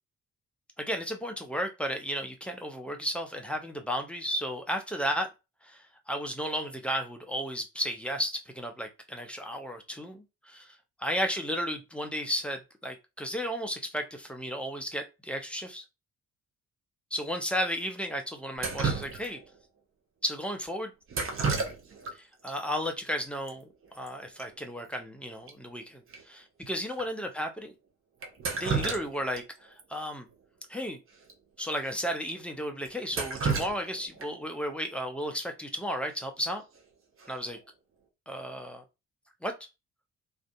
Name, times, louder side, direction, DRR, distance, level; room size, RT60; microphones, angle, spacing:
voice 1, 0.8-5.3 5.6-15.8 17.1-19.4 20.2-20.9 22.2-23.7 23.9-27.7 28.6-29.4 29.9-30.3 30.7-31.0 31.6-36.6 37.3-37.6 38.3-38.8 39.4-39.5, equal, 5° left, 0.5 m, -34 dB
Drip, 18.6-19.6 21.1-22.1 22.4-22.5 23.5-23.6 23.8-24.1 24.4-24.5 24.9-25.0 25.5-25.6 26.1-26.2 26.9-27.0 28.2-29.4 29.8-29.9 31.2-31.3 31.7-31.8 32.3-32.4 32.8-34.5 36.5-36.8 37.2-37.6, right 4 dB, 35° right, 0.8 m, -32 dB
2.4 x 2.4 x 2.3 m
figure-of-eight pair, 40°, 39 cm